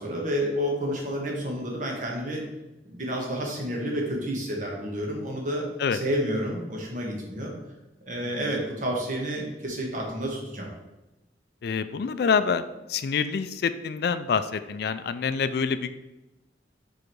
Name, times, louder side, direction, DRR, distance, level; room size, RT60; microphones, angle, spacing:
voice 1, 0.0-2.4 2.9-5.6 5.9-7.5 8.1-10.7, equal, 45° right, -1 dB, 1.5 m, -30 dB
voice 2, 11.6-12.6 12.9-15.9, left 6 dB, 60° left, 11 dB, 0.3 m, -26 dB
5.0 x 4.7 x 4.6 m, 1.0 s
head